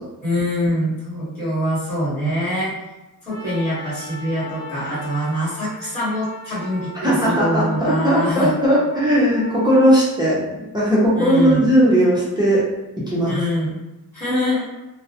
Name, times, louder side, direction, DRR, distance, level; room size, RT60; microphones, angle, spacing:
voice 1, 0.2-2.7 3.2-8.5 11.2-11.7 13.2-13.8 14.1-14.7, equal, 5° left, -13 dB, 1.2 m, -24 dB
Trumpet, 3.3-9.9, left 1 dB, 40° left, 0.8 m, -38 dB
voice 2, 7.0-10.4 10.7-12.6 13.0-13.4, equal, 10° right, -8 dB, 0.5 m, -17 dB
2.3 x 2.0 x 2.7 m, 1.0 s
wide cardioid pair, 145°, 38 cm